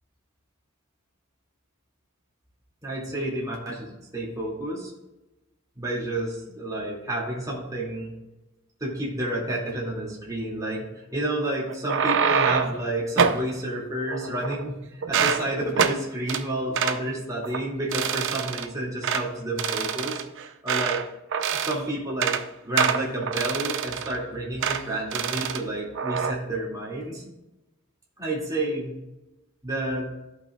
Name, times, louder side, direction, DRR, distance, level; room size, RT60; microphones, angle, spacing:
voice 1, 2.8-4.9 5.8-8.1 8.8-14.8 15.1-20.2 20.6-21.0 21.5-22.3 22.6-27.3 28.2-29.0 29.6-30.1, right 1 dB, 15° right, -5 dB, 2.3 m, -30 dB
sound 1, 11.7-12.8 13.2-13.4 14.1-14.7 15.0-15.4 15.8-16.0 16.3-16.4 16.8-17.0 17.4-17.6 17.9-18.7 19.0-19.2 19.6-21.0 21.3-21.8 22.1-22.4 22.8-24.2 24.6-24.8 25.1-25.6 26.0-26.3, right 7 dB, 60° right, 0.6 m, -25 dB
14.0 x 5.8 x 2.3 m, 0.98 s
head